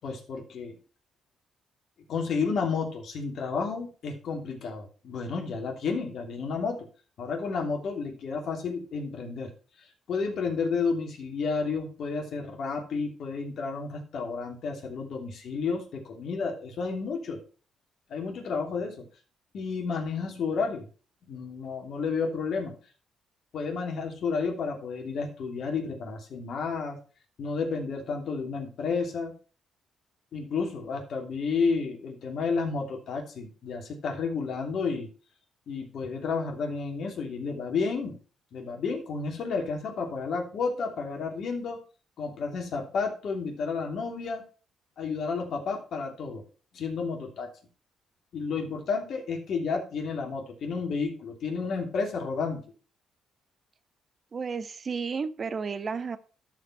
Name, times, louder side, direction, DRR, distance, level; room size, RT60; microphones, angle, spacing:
voice 1, 0.0-0.8 2.1-6.9 7.2-9.5 9.8-17.4 18.1-19.1 19.5-20.9 21.3-22.7 23.5-27.0 27.4-29.4 30.3-35.1 35.7-38.2 38.5-41.8 42.2-44.4 45.0-46.4 46.7-47.5 48.3-52.6, left 4 dB, 65° left, 2 dB, 3.0 m, -31 dB
voice 2, 54.3-56.2, right 5 dB, 40° right, 12 dB, 1.1 m, -32 dB
12.5 x 5.0 x 5.7 m, 0.38 s
cardioid pair, 90°, 0 cm